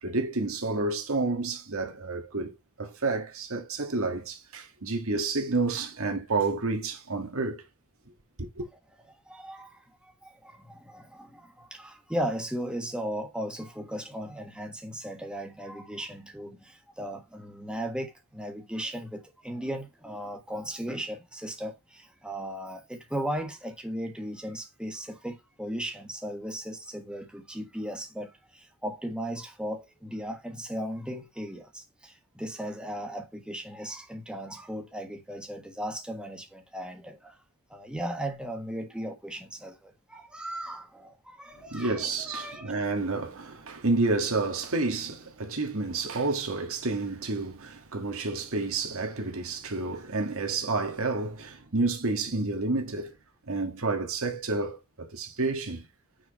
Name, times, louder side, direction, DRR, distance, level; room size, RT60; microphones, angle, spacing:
voice 1, 0.0-7.6 8.4-8.7 41.7-53.1 53.5-55.8, right 3 dB, 65° right, 1.7 m, -30 dB
voice 2, 9.3-37.4 37.7-42.7, equal, 5° right, 1.4 m, -37 dB
6.4 x 5.0 x 5.2 m
head